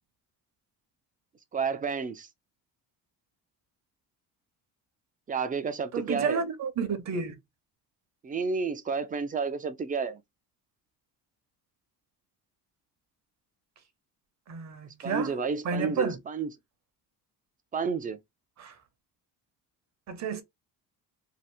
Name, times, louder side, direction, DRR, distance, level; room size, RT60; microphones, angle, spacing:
voice 1, 1.5-2.3 5.3-6.4 8.2-10.2 15.0-16.5 17.7-18.2, right 5 dB, 20° right, 0.4 m, -31 dB
voice 2, 5.9-7.4 14.5-15.3 15.6-16.2 18.6-18.7 20.1-20.4, right 5 dB, 45° right, 0.7 m, -31 dB
2.8 x 2.4 x 3.3 m
cardioid pair, 115°, 39 cm